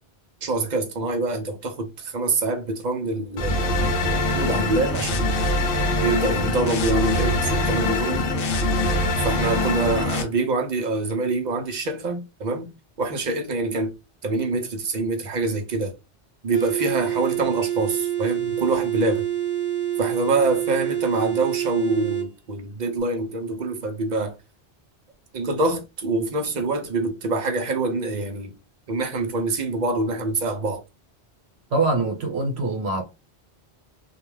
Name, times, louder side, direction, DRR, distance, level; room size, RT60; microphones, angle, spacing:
voice 1, 0.4-3.8 4.0-5.4 6.0-8.3 9.2-12.7 13.0-13.9 14.2-15.9 16.4-19.3 20.0-24.4 25.3-28.5 28.9-30.8, right 3 dB, 50° right, 0.6 m, -25 dB
sound 1, 3.4-10.2, left 1 dB, 65° left, 0.7 m, -23 dB
sound 2, 16.5-22.3, right 11 dB, 30° left, 0.6 m, -26 dB
voice 2, 31.7-33.0, right 2 dB, 75° right, 1.1 m, -23 dB
2.3 x 2.2 x 3.1 m
omnidirectional pair, 1.1 m